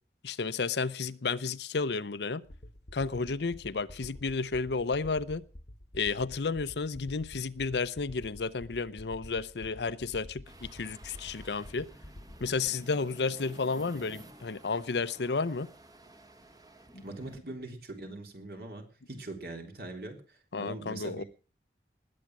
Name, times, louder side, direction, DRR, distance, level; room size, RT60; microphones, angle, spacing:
voice 1, 0.2-2.4 2.9-5.4 5.9-11.9 12.4-15.7 16.9-17.0 20.5-21.2, left 4 dB, 80° left, 0.7 m, -32 dB
sound 1, 2.4-12.7, left 1 dB, 50° left, 1.1 m, -49 dB
sound 2, 10.4-17.4, right 1 dB, 20° right, 1.2 m, -53 dB
voice 2, 17.0-21.2, right 2 dB, 55° right, 3.5 m, -42 dB
19.5 x 8.7 x 6.1 m
head